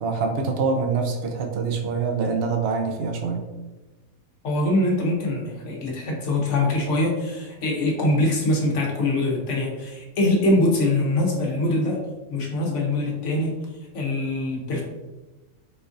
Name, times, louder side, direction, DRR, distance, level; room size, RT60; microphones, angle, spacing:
voice 1, 0.0-3.5, right 4 dB, 75° right, 3 dB, 0.5 m, -25 dB
voice 2, 4.4-12.0 12.3-13.6 13.9-14.8, left 1 dB, 60° left, -2 dB, 1.0 m, -23 dB
4.2 x 2.4 x 2.5 m, 1.1 s
omnidirectional pair, 1.5 m